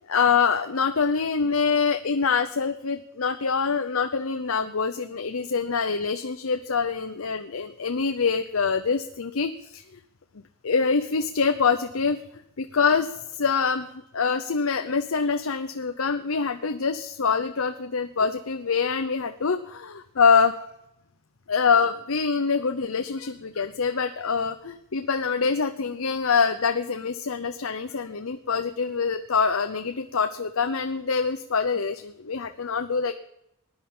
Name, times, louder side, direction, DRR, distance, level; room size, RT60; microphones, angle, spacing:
voice 1, 0.1-9.8 10.6-12.2 12.6-20.5 21.5-33.1, left 5 dB, 75° left, 8 dB, 0.8 m, -25 dB
19.0 x 11.0 x 5.6 m, 0.82 s
head